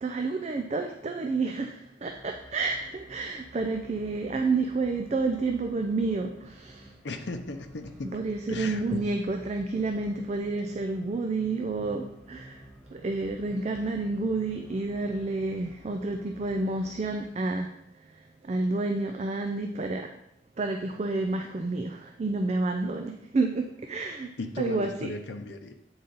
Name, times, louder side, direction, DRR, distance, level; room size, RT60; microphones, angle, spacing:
voice 1, 0.0-6.9 8.1-12.6 12.9-17.7 18.4-20.1 20.6-24.3 24.6-25.1, right 3 dB, 35° right, 4 dB, 0.4 m, -30 dB
sound 1, 2.0-17.3, equal, 10° left, 1.4 m, -52 dB
voice 2, 7.0-8.2 8.5-9.1 24.4-25.7, left 2 dB, 65° left, 6 dB, 0.6 m, -36 dB
8.3 x 3.9 x 3.9 m, 0.80 s
head